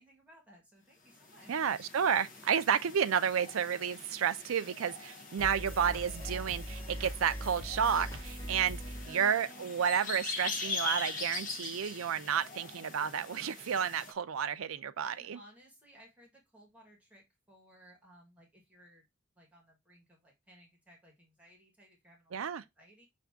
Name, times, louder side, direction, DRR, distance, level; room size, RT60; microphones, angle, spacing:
voice 1, 0.0-1.9 15.0-19.1 19.4-23.1, equal, 5° right, 1.3 m, -60 dB
sound 1, 1.1-14.1, left 3 dB, 40° left, 0.7 m, -42 dB
voice 2, 1.5-15.4 22.3-22.6, right 7 dB, 85° right, 0.4 m, -31 dB
sound 2, 5.4-10.1, equal, 10° left, 1.7 m, -42 dB
5.8 x 2.6 x 3.4 m
head